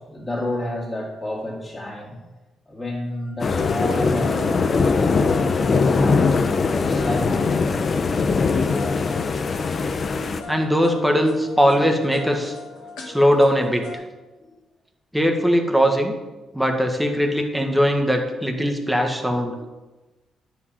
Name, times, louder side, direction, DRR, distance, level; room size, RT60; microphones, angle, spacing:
voice 1, 0.0-2.2 2.7-7.9 14.4-14.5 19.5-19.7, left 1 dB, 15° left, -7 dB, 2.6 m, -30 dB
sound 1, 3.4-10.4, left 4 dB, 45° left, 0.6 m, -21 dB
sound 2, 3.5-14.0, left 3 dB, 90° left, 1.9 m, -38 dB
voice 2, 10.5-12.6 13.1-14.0 15.1-16.1 16.5-19.5, equal, 5° right, 3 dB, 1.4 m, -20 dB
9.6 x 5.1 x 5.7 m, 1.1 s
cardioid pair, 85°, 0 cm